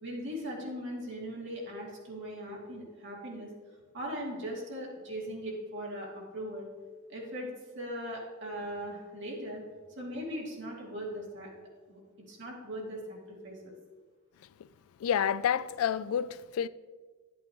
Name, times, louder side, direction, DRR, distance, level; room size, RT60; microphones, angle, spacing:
voice 1, 0.0-3.5 3.9-6.7 7.1-7.5 7.7-9.6 9.9-11.5 11.9-12.0 12.3-13.7, equal, 60° right, 2.4 m, -39 dB
voice 2, 15.0-16.7, left 8 dB, 90° left, 0.3 m, -29 dB
10.5 x 8.3 x 3.0 m
head